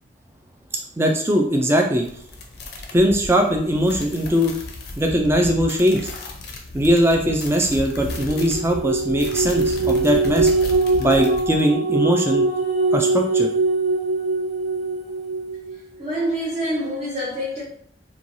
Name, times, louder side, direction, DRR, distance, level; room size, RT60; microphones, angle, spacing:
voice 1, 1.0-2.1 2.9-4.5 5.0-6.1 6.7-10.5 11.0-12.4 12.9-13.5, equal, 15° right, 0.3 m, -20 dB
Walking On Ice, 2.0-11.6, left 2 dB, 60° left, 0.5 m, -34 dB
sound 1, 7.9-15.7, right 3 dB, 60° right, 0.9 m, -22 dB
voice 2, 16.0-17.6, equal, 35° right, 0.7 m, -26 dB
3.1 x 2.2 x 2.6 m
head